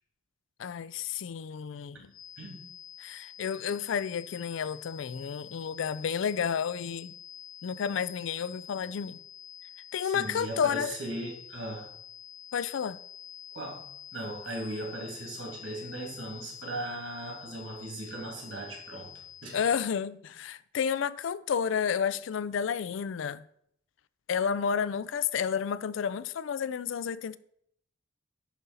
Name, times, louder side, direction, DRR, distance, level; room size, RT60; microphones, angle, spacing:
voice 1, 0.6-2.1 3.0-7.1 7.6-9.2 9.9-11.0 12.5-13.0 19.5-23.5 24.3-27.4, left 7 dB, 70° left, 0.4 m, -31 dB
sound 1, 2.1-19.8, left 9 dB, 85° left, 1.7 m, -48 dB
voice 2, 10.0-11.9 13.5-13.8 14.1-19.1 19.4-19.6, right 1 dB, 80° right, 2.4 m, -38 dB
10.5 x 4.0 x 4.0 m
head